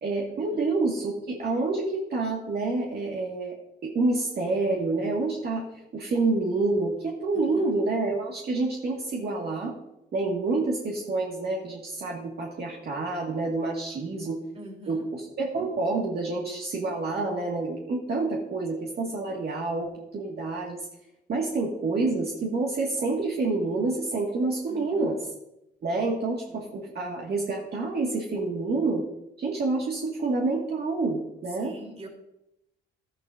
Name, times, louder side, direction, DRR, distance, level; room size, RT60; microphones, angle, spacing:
voice 1, 0.0-3.5 3.8-5.6 5.9-9.7 10.1-14.4 14.9-20.8 21.3-25.2 25.8-29.0 29.4-31.7, right 3 dB, 55° right, -3 dB, 1.9 m, -28 dB
voice 2, 7.3-7.7 14.5-15.1 24.7-25.2 26.5-26.8 31.5-32.1, equal, 30° right, 1 dB, 3.4 m, -45 dB
12.5 x 9.9 x 2.6 m, 0.85 s
cardioid pair, 90°, 20 cm